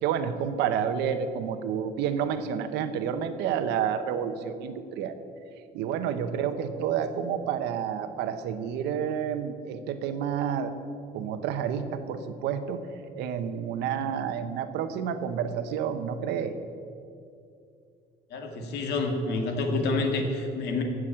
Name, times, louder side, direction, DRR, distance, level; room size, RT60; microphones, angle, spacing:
voice 1, 0.0-5.2 5.7-10.7 11.1-12.8 13.2-16.5, right 8 dB, 90° right, 9 dB, 1.0 m, -29 dB
voice 2, 18.3-20.8, left 3 dB, 80° left, 3 dB, 2.1 m, -28 dB
15.0 x 6.4 x 8.7 m, 2.5 s
cardioid pair, 110°, 17 cm